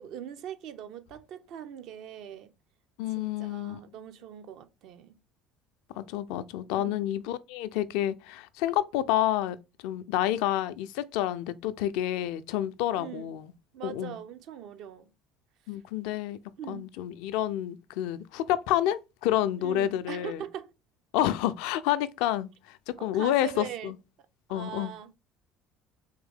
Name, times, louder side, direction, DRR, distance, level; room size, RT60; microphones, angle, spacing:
voice 1, 0.0-2.5 3.1-5.2 6.7-7.0 13.0-13.3 13.7-15.1 16.6-16.9 19.6-20.7 23.0-23.9 24.5-25.1, right 9 dB, 65° right, 0.5 m, -41 dB
voice 2, 3.0-3.8 6.0-9.6 9.8-13.5 13.8-14.2 15.7-16.4 16.7-20.4 21.1-23.9 24.5-24.9, left 12 dB, 70° left, 0.3 m, -29 dB
3.5 x 3.1 x 3.4 m
hypercardioid pair, 65°, 0 cm